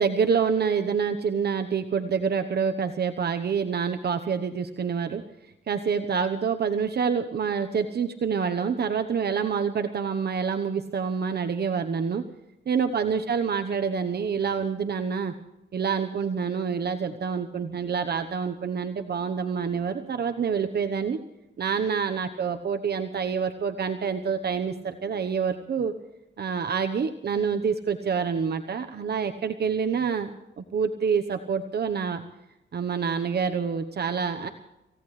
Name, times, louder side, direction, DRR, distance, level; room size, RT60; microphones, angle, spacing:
voice 1, 0.0-12.2 12.7-15.3 15.7-21.2 21.6-25.9 26.4-30.3 30.6-32.2 32.7-34.5, right 6 dB, 55° right, 7 dB, 1.0 m, -27 dB
27.0 x 16.5 x 3.3 m, 0.92 s
wide cardioid pair, 120°, 20 cm